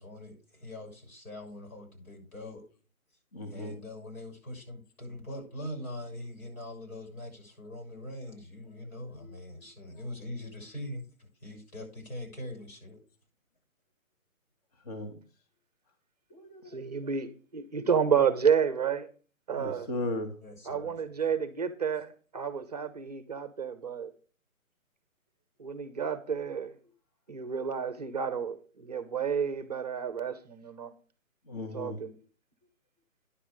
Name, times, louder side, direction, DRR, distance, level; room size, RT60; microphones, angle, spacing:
voice 1, 0.0-2.6 3.5-13.0 20.4-21.0, left 1 dB, 85° left, 6.7 m, -42 dB
voice 2, 3.3-3.8 14.9-15.2 16.3-16.8 17.0-17.1 19.5-20.4 31.5-32.0, left 2 dB, 25° left, 1.0 m, -36 dB
voice 3, 16.7-19.1 19.5-19.9 20.7-24.1 25.6-26.7 27.3-30.9 31.6-32.1, right 7 dB, 30° right, 0.7 m, -30 dB
10.0 x 7.2 x 5.0 m
hypercardioid pair, 155°, 43 cm